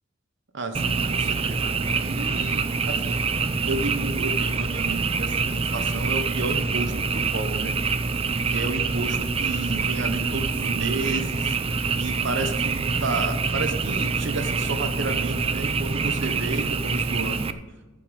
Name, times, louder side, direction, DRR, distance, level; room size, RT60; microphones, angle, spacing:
voice 1, 0.5-7.8 8.5-11.6 12.0-17.5, right 3 dB, 65° right, 7 dB, 1.0 m, -32 dB
Frog, 0.7-17.5, right 4 dB, 30° right, 0.5 m, -26 dB
14.0 x 7.2 x 5.2 m, 1.2 s
head